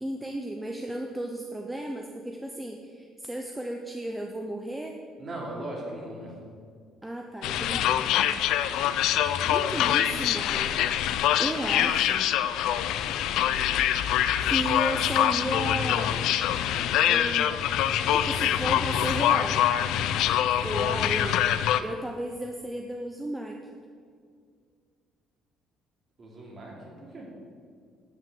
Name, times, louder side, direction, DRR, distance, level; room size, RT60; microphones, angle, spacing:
voice 1, 0.0-5.0 7.0-8.0 9.4-10.8 11.4-12.2 14.4-16.2 17.0-17.5 18.1-19.6 20.5-21.4 21.8-23.6, right 1 dB, 5° right, 2 dB, 0.7 m, -34 dB
voice 2, 5.2-6.4 26.2-27.3, right 1 dB, 30° right, -3 dB, 3.1 m, -38 dB
sound 1, 7.4-21.8, left 11 dB, 75° left, 0.5 m, -25 dB
12.0 x 6.2 x 7.8 m, 2.1 s
cardioid pair, 150°, 0 cm